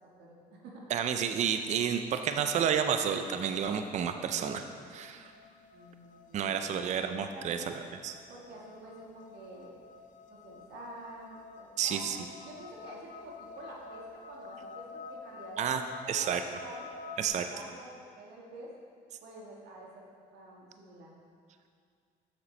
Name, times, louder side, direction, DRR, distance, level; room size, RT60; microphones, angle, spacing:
voice 1, 0.2-0.9 5.7-7.7 8.3-9.7 10.3-12.1 12.4-16.9 17.2-18.8 19.2-21.1, right 2 dB, 80° right, -3 dB, 1.6 m, -49 dB
voice 2, 0.9-5.3 6.3-7.7 8.0-8.2 11.8-12.2 15.6-15.8 16.1-16.4 17.2-17.5, right 8 dB, 45° right, 8 dB, 0.4 m, -30 dB
sound 1, 3.4-17.3, left 4 dB, 50° left, 0.5 m, -49 dB
7.2 x 6.7 x 3.2 m, 2.2 s
cardioid pair, 110°, 17 cm